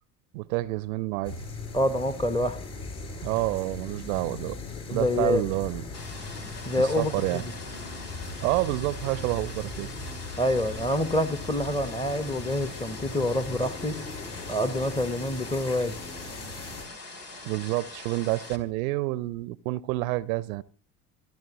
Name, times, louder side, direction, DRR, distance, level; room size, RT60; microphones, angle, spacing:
voice 1, 0.3-1.4 3.2-4.6 4.9-5.8 6.8-7.4 8.4-9.9 17.4-20.6, right 19 dB, 60° right, 0.7 m, -28 dB
sound 1, 1.2-16.9, left 3 dB, 55° left, 6.8 m, -39 dB
voice 2, 1.7-2.6 4.9-5.4 6.6-7.5 10.4-14.0 14.5-16.0, left 1 dB, 10° left, 1.0 m, -27 dB
sound 2, 5.9-18.6, left 2 dB, 75° left, 2.3 m, -43 dB
27.5 x 10.5 x 3.0 m
figure-of-eight pair, 60°, 47 cm